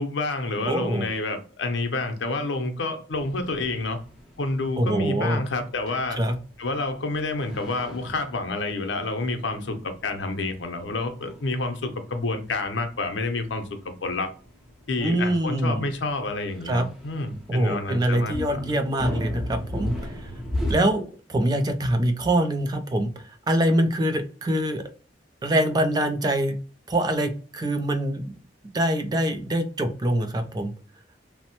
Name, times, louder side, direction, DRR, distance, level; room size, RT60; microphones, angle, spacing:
voice 1, 0.0-4.0 4.4-6.2 6.6-14.3 14.9-18.6, left 2 dB, 80° left, 0.6 m, -29 dB
voice 2, 0.6-1.1 4.8-5.4 6.2-6.4 15.0-15.9 16.6-16.9 17.5-20.3 20.7-21.0 21.3-24.8 25.4-26.6 26.9-28.3 28.7-30.7, right 1 dB, 20° right, 0.4 m, -24 dB
sound 1, 3.1-20.7, left 1 dB, ahead, 0.7 m, -37 dB
3.1 x 2.0 x 2.9 m
head